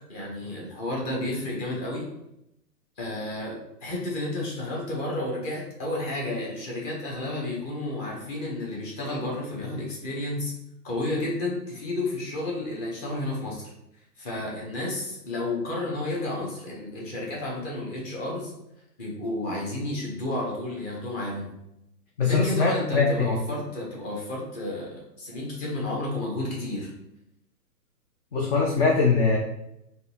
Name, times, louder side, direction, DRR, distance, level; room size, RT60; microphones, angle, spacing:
voice 1, 0.1-2.1 3.0-10.5 10.8-13.7 14.2-18.5 19.0-21.5 22.2-26.9, left 1 dB, 25° left, -3 dB, 0.9 m, -31 dB
voice 2, 22.2-23.4 28.3-29.4, left 4 dB, 40° left, -1 dB, 0.6 m, -22 dB
3.8 x 2.7 x 2.8 m, 0.83 s
hypercardioid pair, 145°, 48 cm